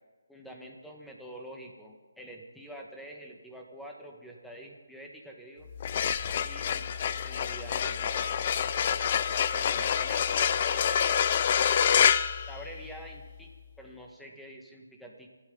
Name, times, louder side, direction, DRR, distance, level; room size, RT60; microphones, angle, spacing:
voice 1, 0.3-5.7 6.4-8.3 9.5-12.1 12.5-13.5 13.8-15.3, right 1 dB, ahead, 0 dB, 1.7 m, -47 dB
sound 1, 5.7-13.2, left 8 dB, 35° left, 0.6 m, -27 dB
28.5 x 12.5 x 4.0 m, 1.4 s
hypercardioid pair, 165°, 0 cm